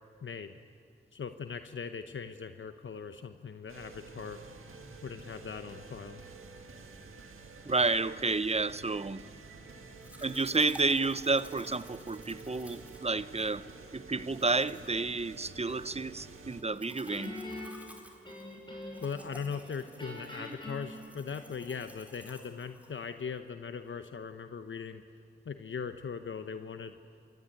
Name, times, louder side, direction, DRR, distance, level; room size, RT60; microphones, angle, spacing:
voice 1, 0.2-0.5 1.1-4.4 5.0-6.2 19.0-25.0 25.4-27.0, left 6 dB, 70° left, 9 dB, 0.9 m, -40 dB
sound 1, 3.7-16.6, right 4 dB, 80° right, 1.9 m, -50 dB
voice 2, 7.7-9.2 10.2-13.7 13.9-17.4, right 3 dB, 30° right, 16 dB, 0.8 m, -30 dB
Domestic sounds home sounds, 10.0-23.4, equal, 5° right, 4.0 m, -55 dB
Guitar, 17.1-19.2 19.5-21.8, left 1 dB, 25° left, 6.7 m, -44 dB
26.0 x 15.0 x 9.5 m, 2.4 s
cardioid pair, 40°, 21 cm